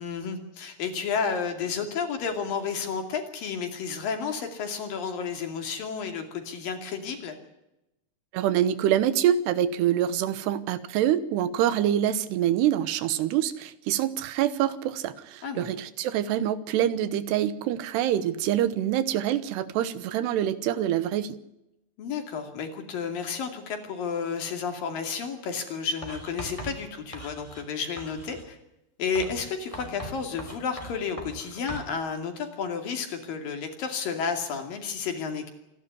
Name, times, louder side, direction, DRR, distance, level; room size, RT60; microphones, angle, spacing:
voice 1, 0.0-7.4 15.4-15.7 22.0-28.6 29.0-35.5, left 6 dB, 60° left, 5 dB, 4.1 m, -31 dB
voice 2, 8.3-21.4, right 11 dB, 85° right, 14 dB, 3.1 m, -25 dB
Writing, 26.0-27.7 28.0-28.5 29.1-31.9, right 1 dB, 10° left, 2.6 m, -40 dB
26.5 x 11.5 x 9.7 m, 0.90 s
omnidirectional pair, 4.7 m